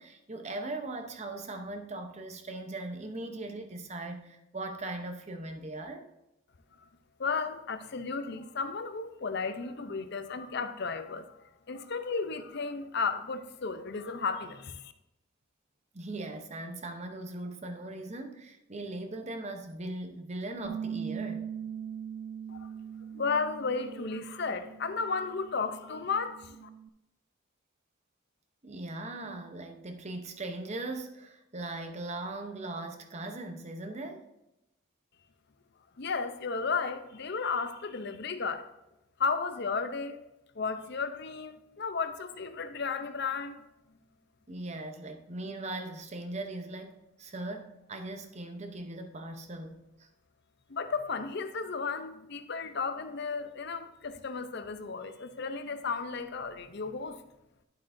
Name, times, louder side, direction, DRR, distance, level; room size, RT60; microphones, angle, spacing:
voice 1, 0.0-6.1 15.9-21.5 28.6-34.3 44.5-50.1, right 2 dB, 35° right, 0.8 m, -39 dB
voice 2, 7.2-11.3 11.7-14.9 22.5-22.7 23.1-26.7 36.0-38.7 39.2-40.2 40.5-43.6 50.7-57.2, left 4 dB, 55° left, 0.6 m, -34 dB
Bass guitar, 20.6-26.9, right 8 dB, 70° right, 0.4 m, -41 dB
11.0 x 7.6 x 2.7 m
head